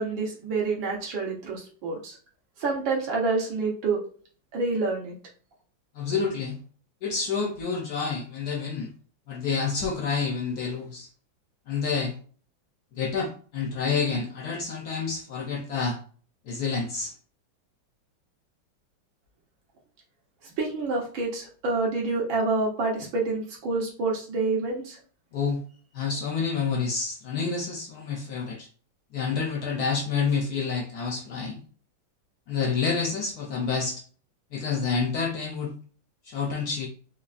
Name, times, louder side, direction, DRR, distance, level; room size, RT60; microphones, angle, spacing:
voice 1, 0.0-2.2 2.6-4.0 4.5-5.1 20.6-25.0, right 3 dB, 75° right, -2 dB, 1.9 m, -27 dB
voice 2, 5.9-6.6 7.0-8.9 9.3-11.1 11.7-12.1 12.9-16.0 16.5-17.1 25.3-25.6 25.9-28.7 29.1-31.6 32.5-34.0 34.5-35.8 36.2-36.9, left 5 dB, 70° left, 1 dB, 0.9 m, -28 dB
4.8 x 2.4 x 2.4 m, 0.43 s
omnidirectional pair, 2.2 m